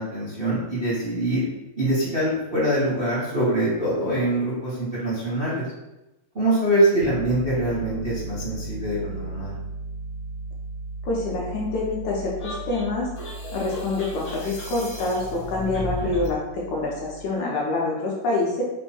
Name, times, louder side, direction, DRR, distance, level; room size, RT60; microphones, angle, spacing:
voice 1, 0.0-1.5 1.8-5.6 6.3-9.5 16.0-16.1, right 1 dB, 50° right, -9 dB, 0.6 m, -24 dB
Piano, 7.0-17.3, right 3 dB, 80° right, 2.1 m, -37 dB
voice 2, 11.0-13.1 13.5-18.6, left 2 dB, 75° left, -3 dB, 2.0 m, -26 dB
sound 1, 12.4-16.4, left 2 dB, 55° left, 0.7 m, -35 dB
5.3 x 2.2 x 4.3 m, 0.97 s
omnidirectional pair, 3.8 m